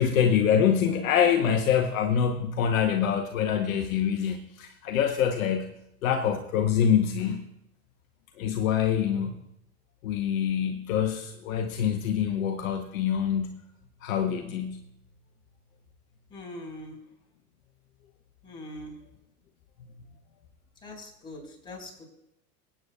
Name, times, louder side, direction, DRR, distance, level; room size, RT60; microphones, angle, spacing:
voice 1, 0.0-5.7 6.0-7.5 8.4-9.4 10.0-13.6 14.0-14.8, left 8 dB, 60° left, 5 dB, 1.1 m, -25 dB
voice 2, 16.3-17.0 18.4-18.9 20.8-22.1, left 1 dB, 10° left, -2 dB, 4.4 m, -42 dB
23.5 x 8.7 x 2.3 m, 0.81 s
figure-of-eight pair, 90°, 46 cm